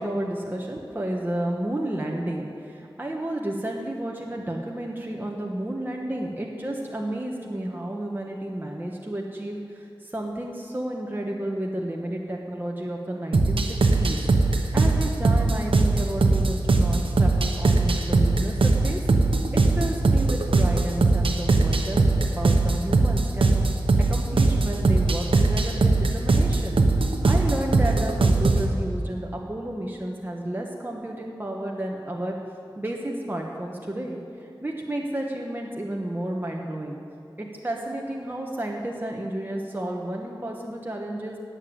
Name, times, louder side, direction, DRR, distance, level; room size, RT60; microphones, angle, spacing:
voice 1, 0.0-14.2 14.5-19.3 19.8-23.6 24.1-26.8 27.2-32.3 32.8-37.0 37.4-41.4, right 1 dB, 25° right, -1 dB, 1.5 m, -32 dB
sound 1, 13.3-28.7, right 3 dB, 90° right, 1.1 m, -20 dB
18.0 x 7.3 x 8.7 m, 2.5 s
wide cardioid pair, 55°, 9 cm